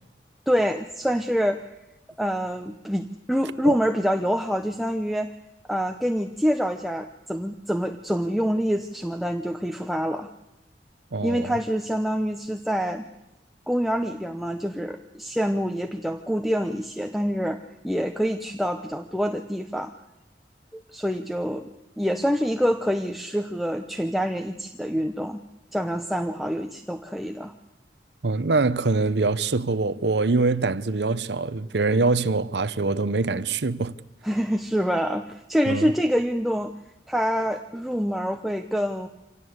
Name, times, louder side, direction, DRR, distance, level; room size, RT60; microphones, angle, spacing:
voice 1, 0.5-1.7 2.2-5.3 5.7-10.3 11.2-13.1 13.7-19.9 20.7-25.4 25.7-27.5 34.2-36.7 37.1-39.1, equal, ahead, 0.8 m, -26 dB
voice 2, 11.1-11.5 28.2-33.9 35.7-35.9, right 3 dB, 75° right, 0.8 m, -24 dB
25.5 x 17.5 x 8.0 m
head